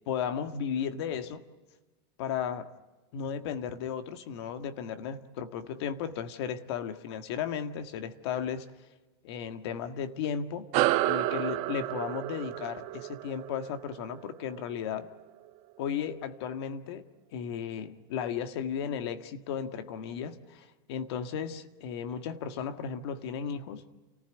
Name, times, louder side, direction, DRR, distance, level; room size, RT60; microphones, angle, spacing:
voice 1, 0.1-1.4 2.2-2.7 3.1-8.7 9.2-10.7 11.0-15.1 15.8-23.8, left 8 dB, 75° left, 8 dB, 1.7 m, -35 dB
sound 1, 10.7-15.6, right 17 dB, 55° right, 1.1 m, -31 dB
29.0 x 15.0 x 9.2 m, 1.2 s
supercardioid pair, 135°, 14 cm